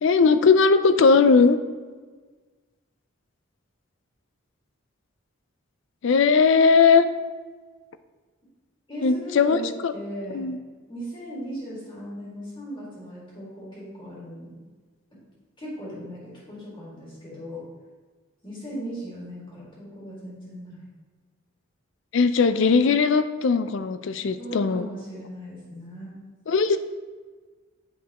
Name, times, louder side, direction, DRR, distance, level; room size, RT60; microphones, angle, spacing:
voice 1, 0.0-1.6 6.0-7.0 9.0-9.9 10.3-10.6 22.1-24.9 26.5-26.8, left 5 dB, 60° left, 12 dB, 0.4 m, -19 dB
voice 2, 8.9-10.4 10.9-14.5 15.6-17.6 18.4-20.8 24.4-26.1, equal, 25° left, -6 dB, 2.0 m, -38 dB
7.8 x 5.2 x 2.9 m, 1.4 s
head